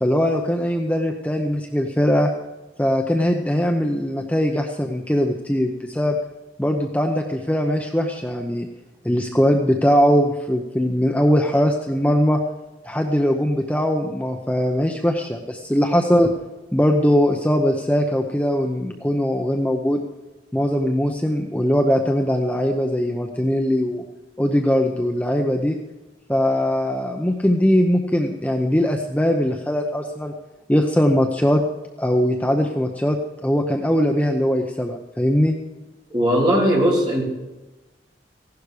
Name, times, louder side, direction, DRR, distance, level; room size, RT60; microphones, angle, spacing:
voice 1, 0.0-2.3 2.8-6.2 6.6-8.7 9.0-12.4 12.8-16.3 16.7-20.0 20.5-24.0 24.4-25.8 26.3-30.3 30.7-31.6 32.0-35.5, equal, 10° left, 2 dB, 0.8 m, -20 dB
voice 2, 36.1-37.2, equal, 25° right, -3 dB, 3.5 m, -18 dB
16.0 x 11.5 x 4.9 m, 1.1 s
head